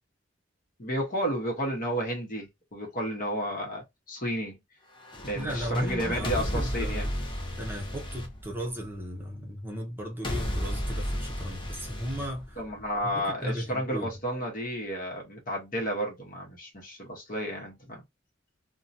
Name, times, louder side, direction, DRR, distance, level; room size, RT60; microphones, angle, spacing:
voice 1, 0.8-4.6 5.2-7.1 12.6-18.0, equal, 45° left, 1.0 m, -32 dB
sound 1, 5.0-9.1 10.2-13.1, equal, 25° left, 0.7 m, -33 dB
voice 2, 5.4-7.1 7.6-12.6 13.0-14.1, equal, 10° right, 0.7 m, -36 dB
2.7 x 2.2 x 2.6 m
head